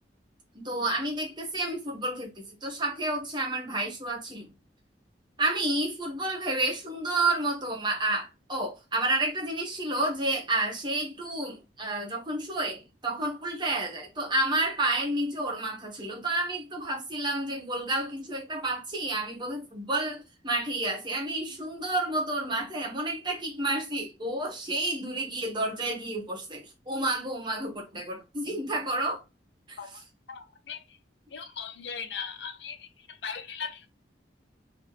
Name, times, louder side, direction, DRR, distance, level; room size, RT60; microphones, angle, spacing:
voice 1, 0.5-2.3 2.6-4.5 5.4-29.2 29.7-30.0, right 2 dB, 25° right, 1.2 m, -30 dB
voice 2, 30.3-30.8 31.3-33.9, left 6 dB, 80° left, 0.6 m, -38 dB
3.2 x 3.1 x 2.8 m
head